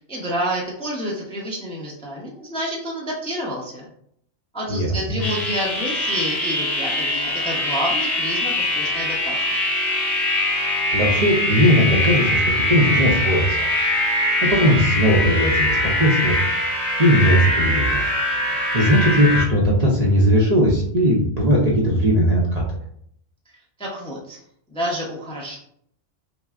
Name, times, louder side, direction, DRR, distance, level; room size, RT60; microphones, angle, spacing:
voice 1, 0.1-3.9 4.5-9.3 23.8-24.4 24.7-25.6, equal, 5° left, -3 dB, 0.6 m, -29 dB
voice 2, 4.7-5.2 10.9-12.4 12.7-13.7 14.4-16.3 17.0-18.0 18.4-22.6, equal, 40° right, -4 dB, 0.7 m, -18 dB
sound 1, 5.2-19.4, left 1 dB, 70° left, 1.4 m, -22 dB
5.5 x 2.0 x 2.4 m, 0.67 s
omnidirectional pair, 1.3 m